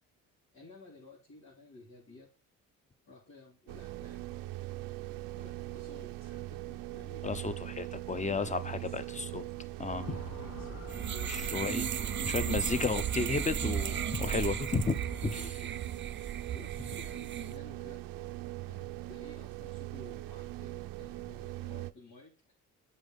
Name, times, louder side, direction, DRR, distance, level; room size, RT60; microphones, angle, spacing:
voice 1, 0.5-2.3 3.1-4.2 5.3-7.3 8.2-8.9 10.0-11.3 11.9-13.0 14.4-14.8 15.2-15.7 16.5-18.0 18.7-22.5, left 2 dB, 70° left, 4.6 m, -54 dB
sound 1, 3.7-21.9, right 17 dB, 80° right, 0.6 m, -41 dB
voice 2, 7.2-9.5 9.8-10.1 11.3-11.9 12.3-15.0 15.2-15.3, left 3 dB, 20° left, 1.0 m, -33 dB
Motor vehicle (road) / Siren, 9.9-15.5, left 1 dB, 50° left, 3.7 m, -45 dB
sound 2, 10.9-17.5, right 9 dB, 35° right, 0.5 m, -35 dB
7.9 x 5.6 x 5.6 m
supercardioid pair, 75°, 34 cm